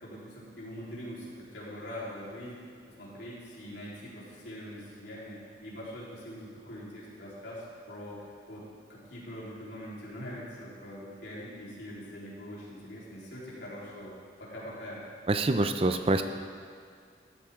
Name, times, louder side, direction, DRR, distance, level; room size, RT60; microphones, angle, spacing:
voice 1, 0.0-2.7 3.0-8.6 8.9-15.0, equal, 85° left, -7 dB, 4.0 m, -43 dB
voice 2, 15.3-16.2, right 2 dB, 30° right, 8 dB, 0.5 m, -25 dB
14.0 x 12.5 x 3.8 m, 2.1 s
head